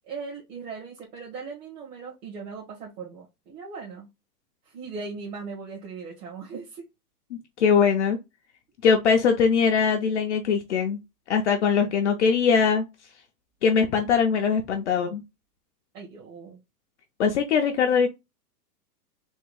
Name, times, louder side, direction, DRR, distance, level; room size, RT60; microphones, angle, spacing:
voice 1, 0.0-4.1 4.6-6.9 15.9-16.6, right 4 dB, 70° right, 1.5 m, -39 dB
voice 2, 7.6-8.2 8.8-11.0 11.3-12.9 13.6-15.2 17.2-18.1, left 6 dB, 50° left, 0.5 m, -21 dB
3.5 x 2.3 x 3.2 m
supercardioid pair, 170°, 47 cm